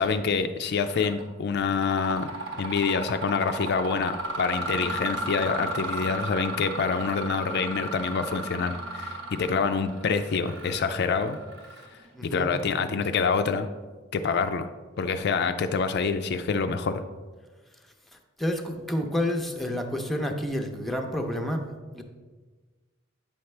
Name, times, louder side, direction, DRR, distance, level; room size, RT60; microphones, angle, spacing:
voice 1, 0.0-2.3 2.6-11.4 12.2-13.7 14.1-14.7 15.0-17.0, left 5 dB, 55° left, 8 dB, 0.4 m, -26 dB
Mechanisms, 0.9-1.2 1.6-12.1, right 1 dB, 70° right, 1.1 m, -35 dB
voice 2, 12.1-12.5 18.4-21.6 21.9-22.0, left 1 dB, ahead, 2 dB, 0.6 m, -29 dB
8.8 x 5.7 x 3.2 m, 1.3 s
head